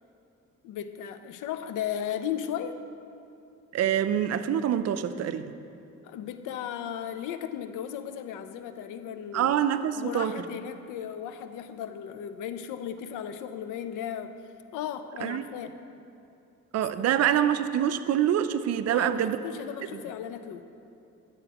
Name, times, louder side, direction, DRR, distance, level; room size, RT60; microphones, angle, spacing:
voice 1, 0.6-2.8 6.0-9.6 9.9-14.4 14.7-15.8 17.0-17.1 18.9-20.6, left 9 dB, 90° left, 10 dB, 0.5 m, -36 dB
voice 2, 3.7-5.5 9.3-10.3 15.2-15.4 16.7-19.4, right 10 dB, 55° right, 11 dB, 0.5 m, -25 dB
11.5 x 7.9 x 2.9 m, 2.7 s
cardioid pair, 90°, 30 cm